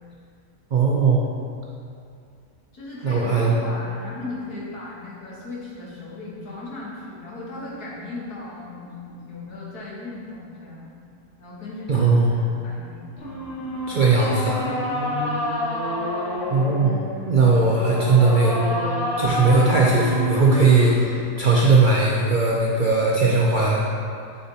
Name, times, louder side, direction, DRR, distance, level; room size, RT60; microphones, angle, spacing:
voice 1, 0.7-1.2 3.0-3.5 11.9-12.3 13.9-14.7 16.5-17.0 17.3-18.6 19.2-23.9, right 3 dB, 65° right, -4 dB, 0.5 m, -18 dB
voice 2, 2.7-10.9 11.4-13.2 14.9-15.4, left 2 dB, 85° left, -6 dB, 1.9 m, -37 dB
sound 1, 13.2-21.2, equal, 45° left, 1.2 m, -28 dB
6.7 x 6.7 x 2.8 m, 2.5 s
omnidirectional pair, 1.6 m